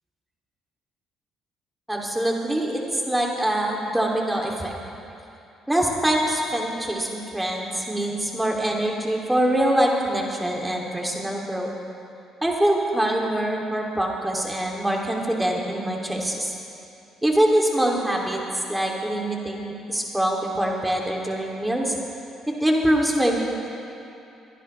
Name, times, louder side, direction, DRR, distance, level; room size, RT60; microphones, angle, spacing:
voice 1, 1.9-4.7 5.7-11.7 12.4-16.5 17.2-18.4 18.7-21.9 22.5-23.4, right 1 dB, 10° right, -1 dB, 2.8 m, -24 dB
25.0 x 10.5 x 3.4 m, 2.7 s
hypercardioid pair, 60°, 0 cm